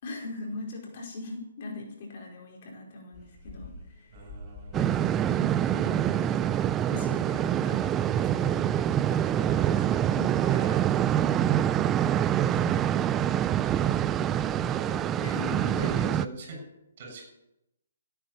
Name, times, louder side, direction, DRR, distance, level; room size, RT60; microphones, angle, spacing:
voice 1, 0.0-4.1 5.2-6.5 6.8-8.7 10.1-10.3 15.2-16.1, left 2 dB, 45° left, 0 dB, 4.7 m, -40 dB
sound 1, 3.1-16.0, left 1 dB, 15° left, 7.6 m, -50 dB
voice 2, 4.1-4.9 9.1-10.8 12.3-13.2 13.6-15.1 15.7-16.7 17.0-17.2, right 2 dB, 45° right, 3 dB, 7.3 m, -45 dB
sound 2, 4.7-16.3, right 10 dB, 15° right, 0.4 m, -25 dB
16.0 x 9.3 x 7.4 m, 0.86 s
hypercardioid pair, 150°, 0 cm